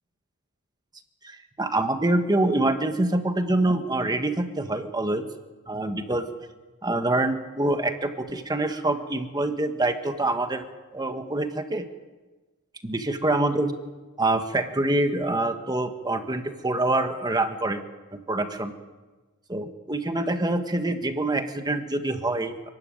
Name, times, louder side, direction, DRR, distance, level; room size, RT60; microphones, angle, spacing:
voice 1, 1.2-5.2 5.7-6.3 6.8-10.6 10.9-11.8 12.8-13.7 14.2-17.8 18.3-18.7 19.5-22.7, right 2 dB, 20° right, 7 dB, 1.6 m, -25 dB
30.0 x 13.0 x 9.1 m, 1.2 s
head